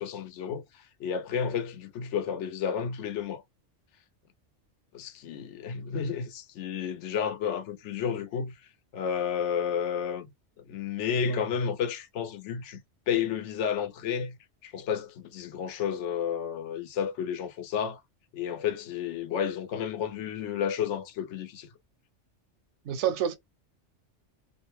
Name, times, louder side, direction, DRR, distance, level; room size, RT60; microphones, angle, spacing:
voice 1, 0.0-3.4 4.9-8.5 8.9-10.3 10.6-12.8 13.1-14.4 14.6-18.0 18.3-21.7, left 7 dB, 80° left, 0.9 m, -31 dB
voice 2, 22.8-23.4, right 9 dB, 80° right, 0.9 m, -28 dB
2.4 x 2.1 x 3.0 m
omnidirectional pair, 1.2 m